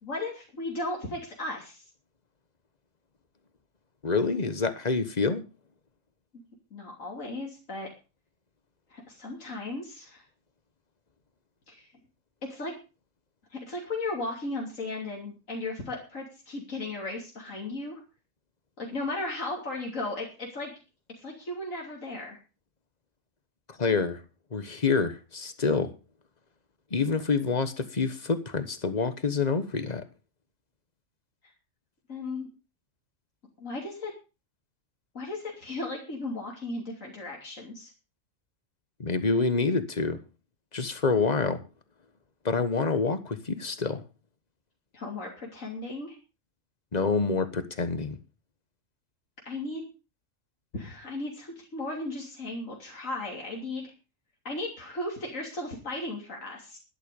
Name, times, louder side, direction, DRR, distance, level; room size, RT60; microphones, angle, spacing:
voice 1, 0.0-1.8 6.7-7.9 8.9-10.2 11.7-11.9 12.5-12.7 13.5-18.0 18.8-20.7 21.2-22.4 32.1-32.5 33.6-34.1 35.1-37.9 44.9-46.2 49.4-49.9 50.7-53.9 54.4-56.8, left 2 dB, 85° left, 3.4 m, -36 dB
voice 2, 4.0-5.4 23.8-24.2 24.5-25.9 26.9-30.0 39.0-40.2 40.7-41.6 42.4-44.0 46.9-48.2, left 4 dB, 35° left, 1.3 m, -27 dB
12.0 x 11.5 x 5.3 m
omnidirectional pair, 1.3 m